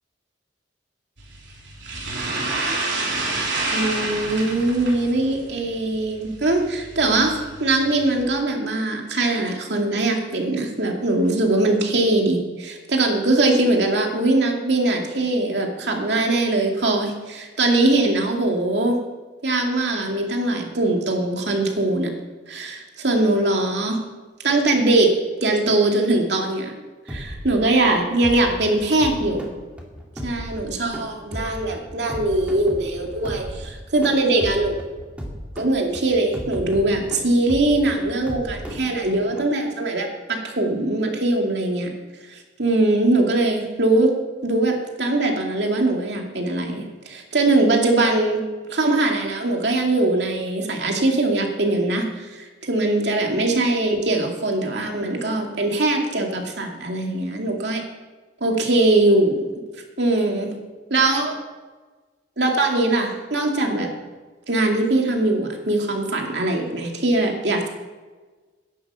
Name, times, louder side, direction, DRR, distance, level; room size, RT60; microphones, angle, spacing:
sound 1, 1.2-8.2, right 2 dB, 90° right, 3.4 m, -29 dB
voice 1, 3.7-19.0 19.4-22.1 22.5-24.0 24.4-25.1 25.4-26.7 27.1-29.5 30.2-34.8 35.6-41.9 42.3-44.1 44.4-48.4 48.7-57.8 58.4-59.4 60.0-60.6 60.9-61.3 62.4-63.9 64.5-67.7, right 2 dB, 70° right, 1 dB, 2.4 m, -21 dB
sound 2, 27.1-39.4, equal, 5° right, 2.3 m, -35 dB
11.0 x 11.0 x 7.0 m, 1.3 s
head